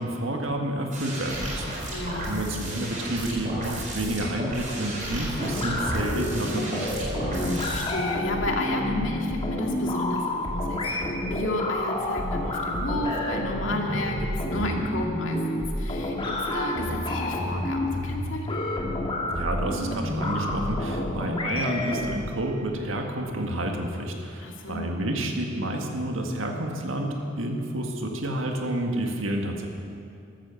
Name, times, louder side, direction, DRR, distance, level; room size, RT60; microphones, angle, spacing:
voice 1, 0.0-7.0 19.3-29.7, right 1 dB, 90° right, 2 dB, 1.8 m, -30 dB
sound 1, 0.9-7.8, right 1 dB, 40° right, 4.7 m, -33 dB
voice 2, 1.9-2.5 7.2-18.6 24.4-24.9, left 1 dB, 80° left, 1 dB, 2.3 m, -32 dB
sound 2, 5.4-22.2, left 1 dB, 25° left, 2.1 m, -29 dB
14.5 x 13.5 x 7.0 m, 2.5 s
head